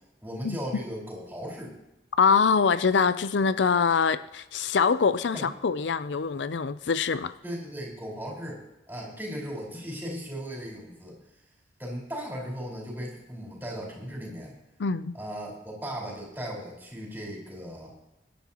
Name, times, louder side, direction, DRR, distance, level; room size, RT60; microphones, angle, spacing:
voice 1, 0.2-1.7 5.3-5.4 7.4-8.6 8.9-11.2 11.8-14.5 15.1-17.9, equal, 10° right, -3 dB, 4.7 m, -37 dB
voice 2, 2.2-7.3 14.8-15.1, left 5 dB, 90° left, 14 dB, 0.5 m, -24 dB
23.0 x 11.0 x 3.0 m, 0.94 s
head